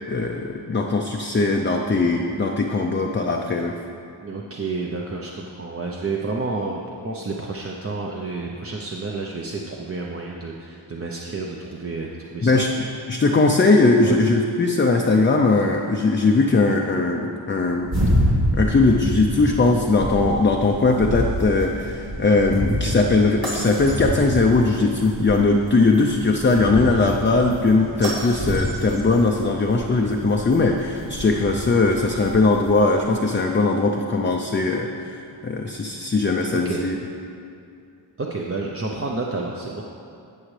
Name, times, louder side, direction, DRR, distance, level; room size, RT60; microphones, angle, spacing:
voice 1, 0.1-3.7 12.4-17.9 18.5-35.1 35.4-37.0, left 3 dB, 25° left, 1 dB, 0.5 m, -20 dB
voice 2, 4.2-12.6 14.0-14.2 36.6-36.8 38.2-39.8, right 3 dB, 30° right, -1 dB, 0.7 m, -30 dB
sound 1, 17.8-33.0, equal, 70° right, 2.5 m, -28 dB
18.5 x 6.2 x 3.3 m, 2.5 s
wide cardioid pair, 80°, 48 cm